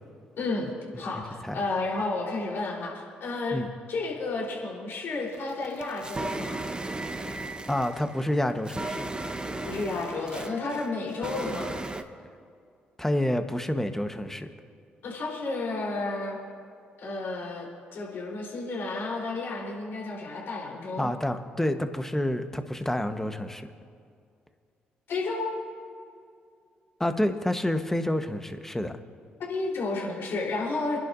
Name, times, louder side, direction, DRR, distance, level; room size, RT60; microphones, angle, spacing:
voice 1, 0.4-0.7 1.0-3.6 3.9-6.6 9.6-11.7 15.0-16.4 17.0-21.1 25.1-25.5 29.4-31.0, left 3 dB, 65° left, -3 dB, 3.9 m, -32 dB
sound 1, 5.3-12.0, right 2 dB, 20° right, 1.0 m, -36 dB
voice 2, 7.7-9.0 13.0-14.5 21.0-23.7 27.0-28.9, left 1 dB, 10° left, 7 dB, 1.2 m, -28 dB
28.5 x 11.0 x 2.7 m, 2.3 s
supercardioid pair, 55°, 4 cm